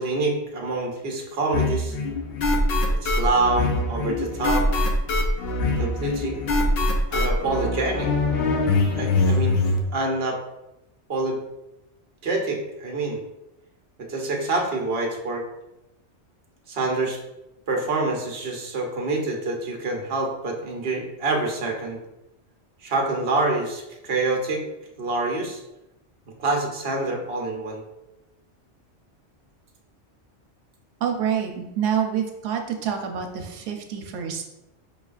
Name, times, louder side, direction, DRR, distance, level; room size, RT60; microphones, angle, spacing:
voice 1, 0.0-1.9 3.0-4.7 5.6-6.4 7.1-8.1 9.0-9.6 9.9-10.4 11.1-11.4 12.2-13.2 14.0-15.4 16.7-17.2 17.7-22.0 22.8-24.6 25.0-25.6 26.4-27.8, right 2 dB, 60° right, 1 dB, 1.0 m, -26 dB
sound 1, 1.5-9.8, left 2 dB, 65° left, 0.8 m, -23 dB
voice 2, 31.0-34.5, right 8 dB, 90° right, 4 dB, 1.0 m, -27 dB
4.9 x 3.1 x 2.4 m, 0.93 s
omnidirectional pair, 1.2 m